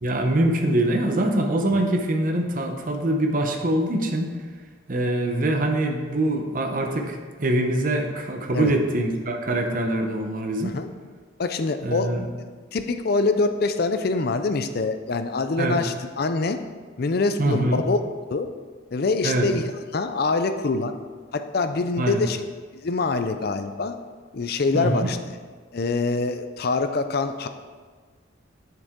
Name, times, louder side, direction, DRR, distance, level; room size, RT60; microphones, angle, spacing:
voice 1, 0.0-4.3 4.9-10.8 11.8-12.3 15.6-15.8 17.4-17.8 19.2-19.5 22.0-22.3 24.7-25.1, right 1 dB, 45° right, 3 dB, 0.8 m, -24 dB
voice 2, 11.4-12.1 12.7-16.6 17.0-18.0 18.3-18.5 18.9-21.0 21.3-22.4 22.7-23.9 24.3-25.2 25.7-27.5, left 3 dB, 50° left, 9 dB, 0.5 m, -24 dB
7.5 x 6.7 x 3.7 m, 1.5 s
head